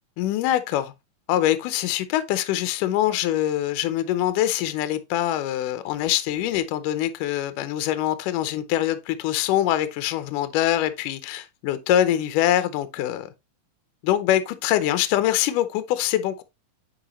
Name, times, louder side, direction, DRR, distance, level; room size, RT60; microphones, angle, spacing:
voice 1, 0.2-0.9 1.3-13.3 14.0-16.4, left 12 dB, 75° left, 2.1 m, -24 dB
8.8 x 4.8 x 3.0 m
omnidirectional pair, 4.2 m